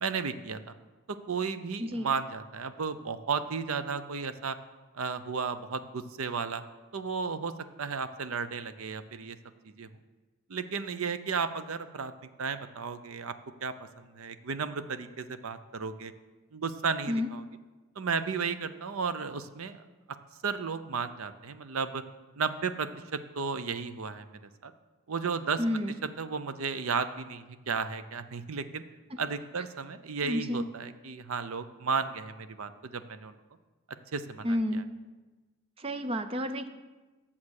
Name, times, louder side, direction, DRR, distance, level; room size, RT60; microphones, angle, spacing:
voice 1, 0.0-0.7 1.3-4.6 4.9-6.6 6.9-7.5 7.8-9.4 9.8-9.9 10.5-12.1 12.4-13.3 13.6-16.1 16.5-17.4 18.0-19.8 20.4-22.0 22.4-24.3 24.6-24.7 25.1-25.6 26.2-28.8 29.2-33.3 34.1-34.8, right 5 dB, 70° right, 11 dB, 0.6 m, -34 dB
voice 2, 25.6-25.9 29.1-29.2 30.2-30.7 34.4-34.9 35.8-36.7, left 1 dB, 25° right, 9 dB, 0.5 m, -30 dB
9.6 x 7.2 x 6.5 m, 1.2 s
head